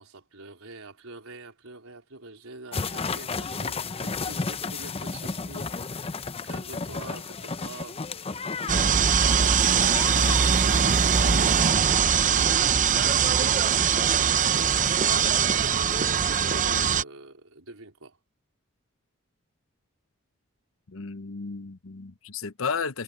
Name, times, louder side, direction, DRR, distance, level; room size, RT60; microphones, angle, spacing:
voice 1, 0.0-8.1 9.2-9.6 10.6-12.5 13.1-15.4 16.4-18.2, right 3 dB, 85° right, 4.3 m, -45 dB
sound 1, 2.7-11.7, left 4 dB, 30° left, 0.7 m, -33 dB
sound 2, 8.7-17.0, right 7 dB, 35° right, 0.7 m, -22 dB
voice 2, 20.9-23.0, left 5 dB, 70° left, 0.9 m, -33 dB
head